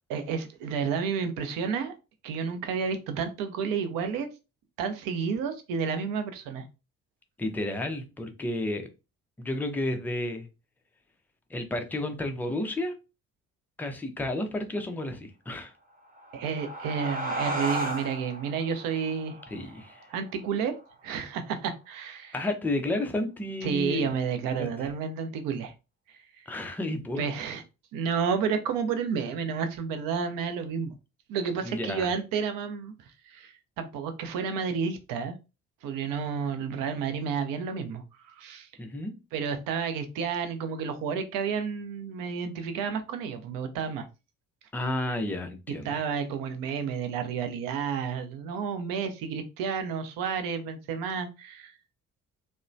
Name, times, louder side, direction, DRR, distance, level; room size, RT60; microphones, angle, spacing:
voice 1, 0.1-1.9 2.2-4.3 4.8-6.7 16.3-19.4 20.1-20.8 21.0-22.4 23.6-25.7 26.1-26.5 27.2-27.6 27.9-30.9 31.3-35.4 35.8-38.7 39.3-44.1 45.8-51.7, right 6 dB, 55° right, 0.6 m, -31 dB
voice 2, 7.4-8.9 9.4-10.5 11.5-13.0 13.8-15.7 19.5-20.1 22.3-24.1 24.6-24.7 26.5-27.3 31.6-32.1 38.8-39.1 44.7-46.0, left 1 dB, 5° left, 0.3 m, -31 dB
sound 1, 16.0-21.2, right 1 dB, 20° right, 0.9 m, -35 dB
2.8 x 2.1 x 2.5 m
figure-of-eight pair, 45°, 42 cm